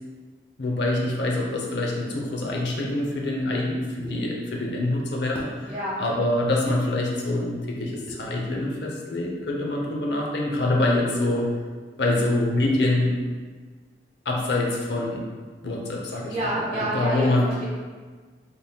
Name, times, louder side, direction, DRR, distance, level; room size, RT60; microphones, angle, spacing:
voice 1, 0.6-5.7 6.0-11.5 12.0-13.2 14.2-15.2 15.6-16.3 16.7-17.5, left 2 dB, 75° left, -1 dB, 0.6 m, -25 dB
sound 1, 4.0-4.2 5.3-5.6 6.7-6.8 8.1-8.3, equal, 5° left, 0.5 m, -38 dB
voice 2, 5.7-6.0 16.2-17.6, right 1 dB, 35° right, -7 dB, 1.2 m, -29 dB
4.2 x 3.5 x 2.3 m, 1.5 s
head